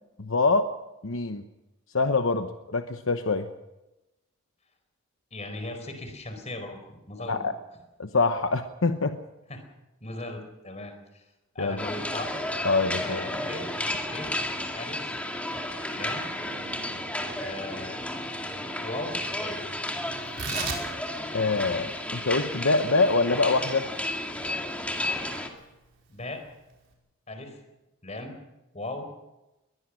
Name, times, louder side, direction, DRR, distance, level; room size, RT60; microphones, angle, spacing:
voice 1, 0.2-0.7 1.0-1.4 1.9-3.5 7.3-7.5 8.0-9.2 11.6-11.8 12.6-13.2 21.3-23.8, left 3 dB, 65° left, 7 dB, 1.0 m, -25 dB
voice 2, 5.3-7.5 9.5-9.6 10.0-11.3 11.5-12.3 13.0-13.6 14.1-14.3 14.8-15.1 15.9-16.3 17.4-18.0 18.8-19.6 26.1-26.4 27.3-27.6 28.0-28.3 28.7-29.1, left 2 dB, 30° left, 6 dB, 4.4 m, -37 dB
sound 1, 11.8-25.5, left 1 dB, 5° left, 2.1 m, -33 dB
Tearing, 20.2-26.9, right 5 dB, 60° right, 5.3 m, -40 dB
22.5 x 20.0 x 6.3 m, 0.99 s
head